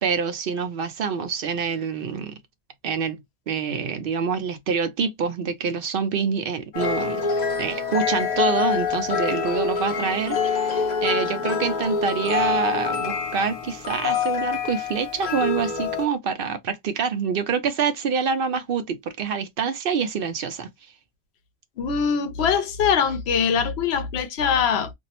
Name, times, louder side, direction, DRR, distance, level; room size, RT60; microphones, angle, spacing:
voice 1, 0.0-2.4 2.8-3.2 3.5-7.2 7.6-20.7, right 6 dB, 65° right, 0.7 m, -26 dB
sound 1, 6.7-16.1, left 6 dB, 45° left, 0.7 m, -25 dB
voice 2, 21.8-24.9, left 6 dB, 80° left, 0.9 m, -22 dB
2.5 x 2.0 x 2.8 m
omnidirectional pair, 1.1 m